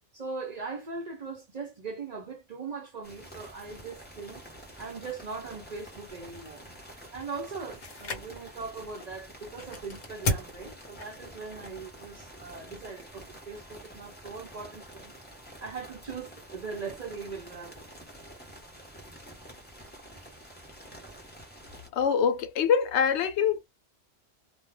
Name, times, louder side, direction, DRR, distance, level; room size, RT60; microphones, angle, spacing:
voice 1, 0.1-4.4 4.8-6.6 7.1-15.1 15.6-17.9, right 4 dB, 45° right, 0.6 m, -40 dB
sound 1, 3.0-21.9, right 1 dB, 10° left, 0.8 m, -48 dB
sound 2, 4.7-13.1, left 2 dB, 50° left, 0.7 m, -39 dB
voice 2, 21.9-23.6, left 7 dB, 75° left, 0.9 m, -24 dB
2.3 x 2.1 x 3.1 m
omnidirectional pair, 1.2 m